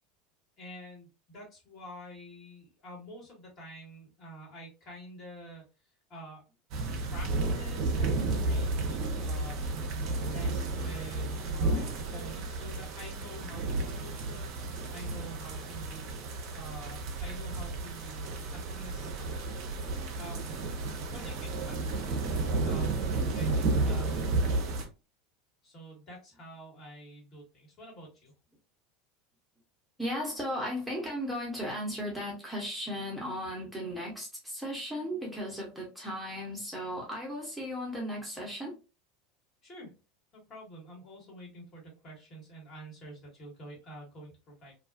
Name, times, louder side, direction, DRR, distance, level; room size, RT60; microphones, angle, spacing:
voice 1, 0.6-5.6 6.1-6.5 7.0-16.1 16.5-19.1 20.1-20.6 21.1-22.0 22.6-24.8 25.6-28.3 39.6-39.9 40.3-44.7, right 1 dB, 40° left, 1.5 m, -47 dB
sound 1, 6.7-24.9, right 3 dB, 50° right, 0.5 m, -32 dB
voice 2, 30.0-38.8, equal, ahead, 1.0 m, -36 dB
2.4 x 2.3 x 2.5 m
figure-of-eight pair, 80°, 0 cm